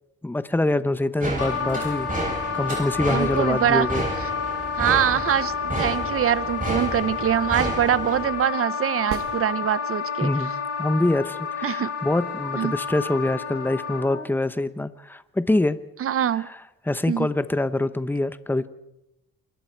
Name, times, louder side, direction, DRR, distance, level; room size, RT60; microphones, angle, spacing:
voice 1, 0.2-2.1 2.5-4.1 5.7-5.9 10.2-10.5 10.8-15.8 16.9-18.7, left 2 dB, 5° left, 13 dB, 0.9 m, -24 dB
sound 1, 1.2-8.3, right 2 dB, 25° right, 7.9 m, -31 dB
Wind instrument woodwind instrument, 1.4-14.3, left 6 dB, 50° left, 7.0 m, -30 dB
voice 2, 3.1-3.9 4.2-4.3 4.8-10.3 11.6-11.9 12.5-12.8 16.0-16.5 17.1-17.3, right 10 dB, 50° right, 18 dB, 0.8 m, -24 dB
sound 2, 9.1-10.2 14.1-14.2, right 8 dB, 70° right, 1.9 m, -36 dB
28.0 x 21.5 x 4.6 m, 0.87 s
cardioid pair, 90°, 30 cm